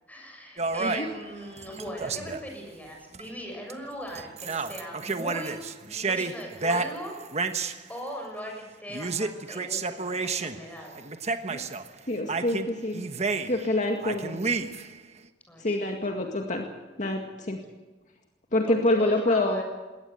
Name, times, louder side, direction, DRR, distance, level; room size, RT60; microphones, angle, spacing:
voice 1, 0.1-5.5 5.9-7.1 7.6-10.9 15.5-15.9 16.2-16.3 18.7-19.6, equal, 10° left, 1 dB, 7.0 m, -40 dB
sound 1, 0.6-2.5 3.1-3.3 3.7-3.9 4.1-7.8 8.9-10.6 11.0-11.9 12.3-13.7 14.0-15.0, right 4 dB, 40° right, 1.2 m, -31 dB
voice 2, 12.1-13.0 13.5-14.4 15.6-16.7 17.0-17.6 18.5-19.6, left 1 dB, 45° left, 2 dB, 2.1 m, -26 dB
21.5 x 18.0 x 8.0 m, 1.2 s
head